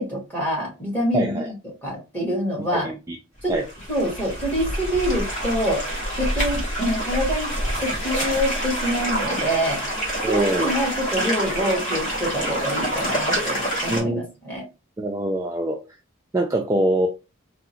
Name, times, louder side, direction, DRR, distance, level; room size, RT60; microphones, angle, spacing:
voice 1, 0.0-1.4 1.8-2.9 3.4-3.5 3.9-5.8 6.2-9.8 10.3-14.6, equal, 10° left, 1.4 m, -26 dB
voice 2, 1.1-1.5 2.6-3.2 3.5-3.7 10.2-10.7 13.9-14.3 15.0-15.8 16.3-17.1, right 1 dB, 15° right, 0.3 m, -24 dB
sound 1, 3.4-14.0, right 1 dB, 40° left, 1.1 m, -27 dB
3.6 x 2.1 x 2.8 m
head